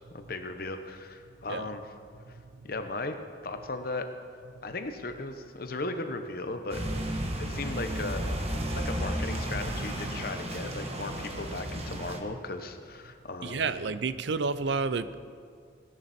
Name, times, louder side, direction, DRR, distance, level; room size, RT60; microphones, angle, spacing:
voice 1, 0.1-1.9 2.3-2.4 2.6-3.1 3.4-4.1 4.6-6.8 7.4-8.5 8.7-13.7, left 2 dB, 55° left, 7 dB, 1.0 m, -36 dB
sound 1, 6.7-12.2, equal, 35° right, 1.3 m, -33 dB
voice 2, 13.4-15.2, right 4 dB, 70° right, 14 dB, 0.5 m, -30 dB
17.5 x 10.5 x 4.3 m, 2.2 s
head